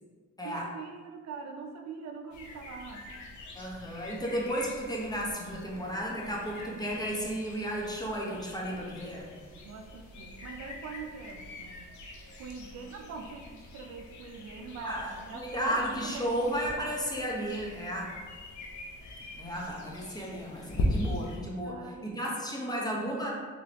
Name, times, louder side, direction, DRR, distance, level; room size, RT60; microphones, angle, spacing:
voice 1, 0.4-3.1 9.5-11.9 12.4-16.8 21.6-22.3, right 5 dB, 65° right, 4 dB, 0.5 m, -43 dB
sound 1, 2.3-21.4, left 1 dB, 75° left, 0.8 m, -41 dB
voice 2, 3.6-9.3 14.8-18.2 19.4-23.3, equal, 15° left, -3 dB, 0.9 m, -33 dB
3.6 x 3.3 x 3.0 m, 1.4 s
cardioid pair, 90°, 30 cm